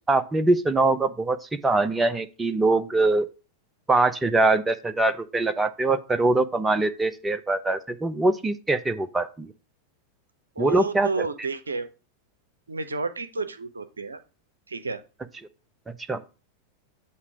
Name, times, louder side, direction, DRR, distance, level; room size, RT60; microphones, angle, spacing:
voice 1, 0.1-3.3 3.9-9.5 10.6-11.3 16.1-16.2, right 2 dB, 10° right, 10 dB, 0.5 m, -23 dB
voice 2, 10.6-11.9 12.7-14.2 14.7-15.0, right 3 dB, 75° right, 10 dB, 0.6 m, -31 dB
8.2 x 2.9 x 5.7 m, 0.32 s
figure-of-eight pair, 90°, 0 cm